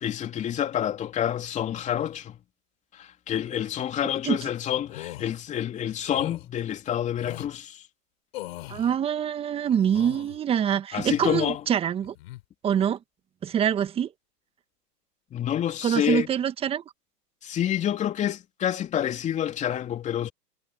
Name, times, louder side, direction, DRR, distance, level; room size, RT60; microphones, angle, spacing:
voice 1, 0.0-2.4 2.9-7.8 10.9-11.6 15.3-16.3 17.4-20.3, left 10 dB, 15° left, 2.9 m, -28 dB
sound 1, 4.8-5.3 6.1-6.4 7.2-7.5 8.3-9.0 9.7-10.4 11.0-11.7 12.0-12.4, left 17 dB, 40° left, 3.4 m, -40 dB
voice 2, 8.7-12.1 12.6-13.0 13.4-14.1 15.8-16.8, right 9 dB, 10° right, 1.7 m, -25 dB
hypercardioid pair, 135°, 49 cm